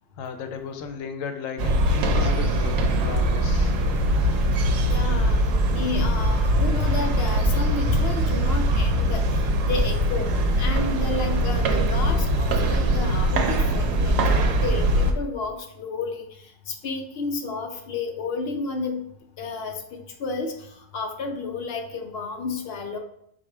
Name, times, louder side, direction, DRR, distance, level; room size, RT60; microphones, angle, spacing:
voice 1, 0.2-3.7, left 5 dB, 85° left, 6 dB, 1.0 m, -35 dB
sound 1, 1.6-15.1, right 1 dB, 85° right, 1.0 m, -22 dB
voice 2, 4.9-5.4 5.7-10.3 10.6-16.3 16.7-19.0 19.4-20.7 20.9-23.0, left 4 dB, 60° left, 4 dB, 0.7 m, -31 dB
4.1 x 2.5 x 4.6 m, 0.71 s
omnidirectional pair, 1.3 m